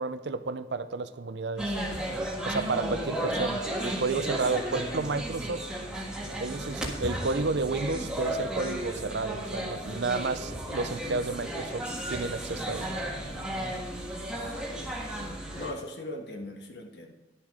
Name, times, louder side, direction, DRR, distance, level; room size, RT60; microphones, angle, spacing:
voice 1, 0.0-1.7 2.4-5.7 6.4-12.9, right 3 dB, 70° right, 12 dB, 0.6 m, -31 dB
sound 1, 1.6-15.7, right 1 dB, 5° right, 1.6 m, -34 dB
voice 2, 14.4-14.9 15.5-17.1, left 1 dB, 65° left, 3 dB, 1.7 m, -40 dB
11.5 x 7.3 x 5.0 m, 1.2 s
head